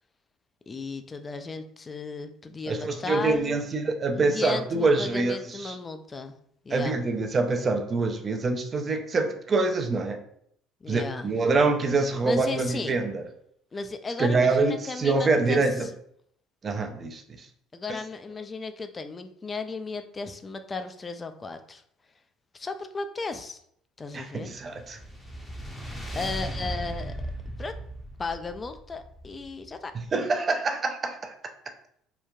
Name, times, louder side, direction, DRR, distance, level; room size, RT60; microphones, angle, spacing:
voice 1, 0.7-3.6 4.1-6.3 6.6-7.0 10.8-11.3 12.2-12.9 13.7-15.9 17.7-21.8 22.5-23.6 24.0-24.5 26.1-27.1 27.6-27.7 28.2-29.9, left 4 dB, 30° left, 8 dB, 0.3 m, -35 dB
voice 2, 2.7-5.8 6.7-10.2 10.9-13.2 14.2-15.9 16.6-17.5 24.1-25.0 29.9-31.3, right 3 dB, 40° right, 5 dB, 0.4 m, -25 dB
sound 1, 24.4-29.8, equal, 10° left, 0.7 m, -37 dB
3.1 x 2.1 x 2.3 m, 0.68 s
hypercardioid pair, 70°, 0 cm